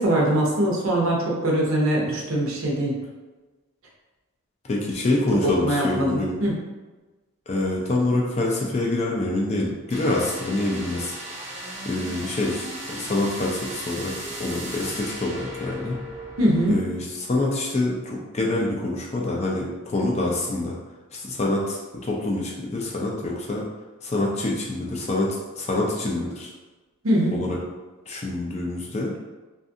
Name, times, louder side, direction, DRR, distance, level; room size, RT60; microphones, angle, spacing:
voice 1, 0.0-2.9 5.4-6.6 16.4-16.8 27.0-27.4, right 1 dB, 70° right, -3 dB, 0.7 m, -22 dB
voice 2, 4.7-6.4 7.5-11.1 11.9-14.1 14.4-16.0 16.7-20.7 21.1-23.7 24.0-26.5 27.3-27.6 28.1-29.1, left 2 dB, 30° left, -2 dB, 0.4 m, -26 dB
sound 1, 9.9-16.8, right 1 dB, 30° right, 0.7 m, -36 dB
2.6 x 2.4 x 2.6 m, 1.2 s
head